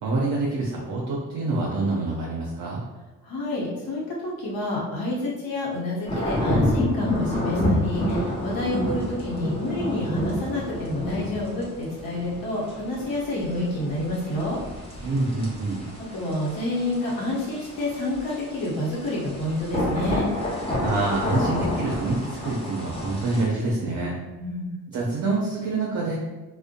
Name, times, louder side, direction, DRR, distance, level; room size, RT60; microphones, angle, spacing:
voice 1, 0.0-2.8 15.0-15.8 20.8-24.2 24.9-26.2, right 2 dB, 50° right, -3 dB, 0.6 m, -26 dB
voice 2, 3.2-14.6 16.1-20.3 24.4-24.7, left 1 dB, 65° left, -5 dB, 0.9 m, -29 dB
sound 1, 6.1-23.4, left 1 dB, 15° left, 0.8 m, -29 dB
2.5 x 2.1 x 2.5 m, 1.1 s
supercardioid pair, 60°, 38 cm